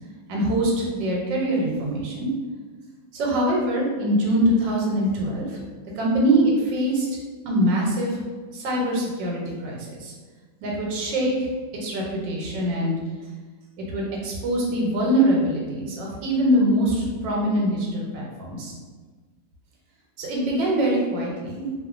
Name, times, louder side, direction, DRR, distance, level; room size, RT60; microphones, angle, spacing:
voice 1, 0.3-2.3 3.1-5.6 6.0-6.4 6.7-7.1 7.5-8.2 8.5-10.1 10.6-11.5 11.8-12.9 13.9-18.7 20.2-21.7, right 1 dB, 80° right, -3 dB, 1.3 m, -23 dB
2.9 x 2.1 x 2.4 m, 1.4 s
omnidirectional pair, 2.0 m